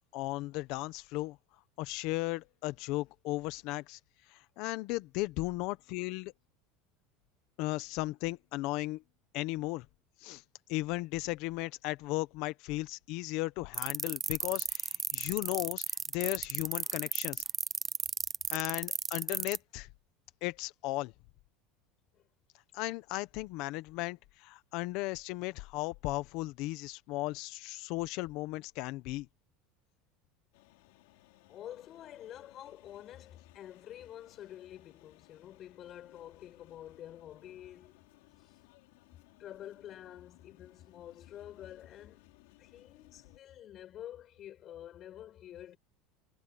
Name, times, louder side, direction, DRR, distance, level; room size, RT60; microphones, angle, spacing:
voice 1, 0.1-1.4 1.8-4.0 4.3-6.3 7.6-9.0 9.3-9.8 10.2-10.4 10.7-15.8 16.1-17.4 18.5-19.9 20.4-21.1 22.7-29.3, left 20 dB, 55° left, 1.3 m, -36 dB
sound 1, 13.7-19.6, right 7 dB, 20° right, 0.5 m, -33 dB
sound 2, 30.5-43.4, left 24 dB, 75° left, 6.5 m, -62 dB
voice 2, 31.5-38.0 38.4-38.5 39.4-42.2 42.6-45.8, left 11 dB, 35° left, 5.9 m, -48 dB
supercardioid pair, 150°, 0 cm